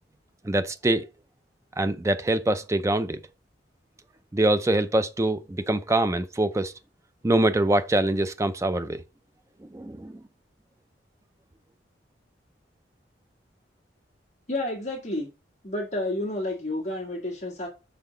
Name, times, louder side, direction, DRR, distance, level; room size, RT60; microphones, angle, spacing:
voice 1, 0.4-1.1 1.8-3.2 4.3-6.7 7.2-9.0 9.6-10.2, right 1 dB, 15° right, 0.4 m, -24 dB
voice 2, 14.5-15.3 15.6-17.7, left 1 dB, 35° left, 1.7 m, -30 dB
5.7 x 3.4 x 4.9 m
head